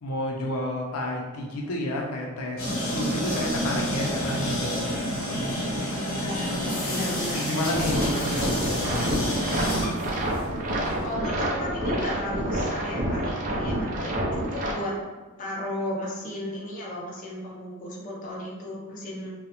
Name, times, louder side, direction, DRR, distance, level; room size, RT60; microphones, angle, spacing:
voice 1, 0.0-5.8 7.3-9.6, left 1 dB, 90° left, -1 dB, 0.5 m, -31 dB
sound 1, 2.6-10.5, equal, 65° left, 0.8 m, -29 dB
voice 2, 6.0-6.6 6.8-7.5 11.0-15.0 15.4-19.3, left 1 dB, 35° left, -4 dB, 0.5 m, -34 dB
sound 2, 7.7-14.7, right 1 dB, 35° right, 0.4 m, -28 dB
2.4 x 2.0 x 2.8 m, 1.3 s
head